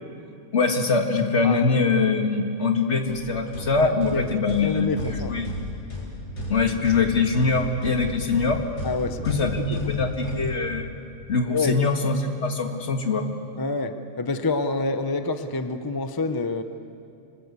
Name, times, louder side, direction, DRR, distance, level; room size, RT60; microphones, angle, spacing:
voice 1, 0.5-5.5 6.5-8.6 9.2-10.9 11.3-13.3, left 4 dB, 45° left, 4 dB, 2.0 m, -23 dB
sound 1, 3.1-11.1, left 1 dB, 85° left, 5.0 m, -34 dB
voice 2, 3.8-4.2 4.6-5.4 8.8-9.3 9.8-10.1 11.5-11.8 13.6-16.6, left 3 dB, 25° left, 9 dB, 0.5 m, -27 dB
25.5 x 20.0 x 8.2 m, 2.7 s
omnidirectional pair, 1.7 m